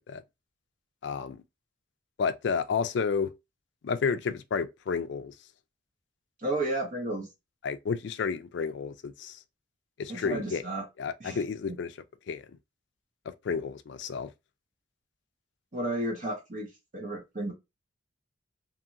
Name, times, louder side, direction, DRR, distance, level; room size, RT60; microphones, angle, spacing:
voice 1, 1.0-1.4 2.2-3.3 3.8-5.3 7.6-9.4 10.0-10.6 11.0-11.9 12.3-12.4 13.3-14.3, left 5 dB, 60° left, 0.3 m, -31 dB
voice 2, 6.4-7.3 10.1-10.8 11.2-11.4 15.7-17.5, right 1 dB, 40° right, 1.0 m, -32 dB
2.8 x 2.6 x 2.5 m
head